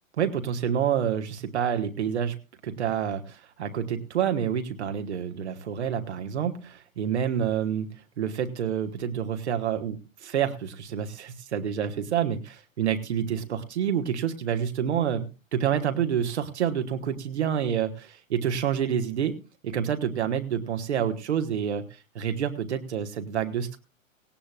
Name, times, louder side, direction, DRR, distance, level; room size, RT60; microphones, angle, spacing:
voice 1, 0.2-2.4 2.6-7.9 8.2-19.4 19.6-23.8, right 8 dB, 55° right, 6 dB, 1.5 m, -28 dB
17.5 x 17.5 x 2.4 m, 0.31 s
figure-of-eight pair, 110°, 40 cm